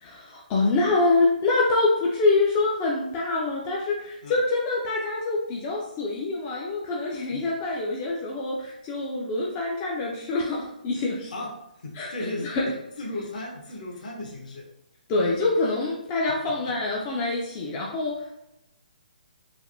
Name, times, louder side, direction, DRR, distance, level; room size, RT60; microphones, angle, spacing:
voice 1, 0.0-11.3 12.0-12.1 12.4-12.7 15.1-18.4, left 3 dB, 25° left, -3 dB, 0.3 m, -25 dB
voice 2, 11.8-12.5 13.0-14.6 16.2-16.5, left 2 dB, 55° left, -1 dB, 0.8 m, -35 dB
3.3 x 2.1 x 2.5 m, 0.86 s
figure-of-eight pair, 140°, 5 cm